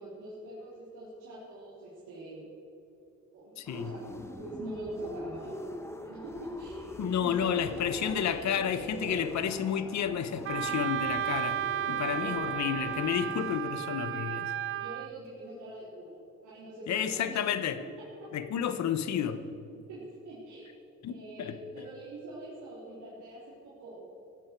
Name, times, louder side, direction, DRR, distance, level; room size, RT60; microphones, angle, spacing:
voice 1, 0.0-2.4 3.3-4.0 4.4-5.5 6.0-9.2 12.0-12.6 14.8-17.4 17.8-18.3 19.9-20.7 21.1-24.0, right 1 dB, 80° right, -8 dB, 3.7 m, -44 dB
voice 2, 3.6-3.9 7.0-11.6 11.9-14.5 16.9-17.8 18.3-19.4 21.0-21.6, left 8 dB, 65° left, 11 dB, 1.0 m, -31 dB
sound 1, 3.6-13.6, left 1 dB, 10° left, 1.1 m, -44 dB
Wind instrument woodwind instrument, 10.5-15.1, right 11 dB, 45° right, 0.4 m, -33 dB
16.0 x 11.5 x 4.6 m, 2.9 s
cardioid pair, 90°, 30 cm